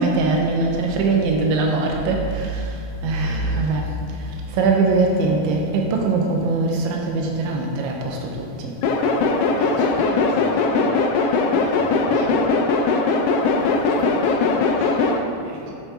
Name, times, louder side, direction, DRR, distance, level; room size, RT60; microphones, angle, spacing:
voice 1, 0.0-2.8 3.0-3.9 4.5-8.7, right 3 dB, 85° right, 1 dB, 3.2 m, -21 dB
voice 2, 0.8-1.2 2.1-2.5 3.2-4.0 5.4-5.8 8.4-8.7 9.1-12.6 13.4-15.7, right 2 dB, 65° right, -3 dB, 2.9 m, -37 dB
sound 1, 8.8-15.2, left 4 dB, 80° left, 2.4 m, -20 dB
9.6 x 8.3 x 3.7 m, 2.6 s
omnidirectional pair, 5.2 m